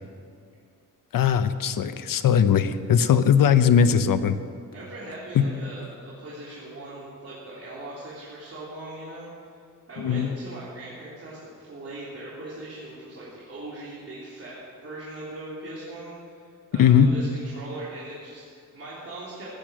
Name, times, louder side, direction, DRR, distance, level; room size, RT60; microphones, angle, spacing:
voice 1, 1.1-4.4 5.3-5.4 10.0-10.3 16.7-17.1, left 8 dB, 90° left, 11 dB, 0.9 m, -19 dB
voice 2, 4.7-9.3 9.9-19.5, right 1 dB, 45° right, -8 dB, 3.6 m, -40 dB
15.5 x 10.5 x 7.6 m, 2.3 s
wide cardioid pair, 135°, 33 cm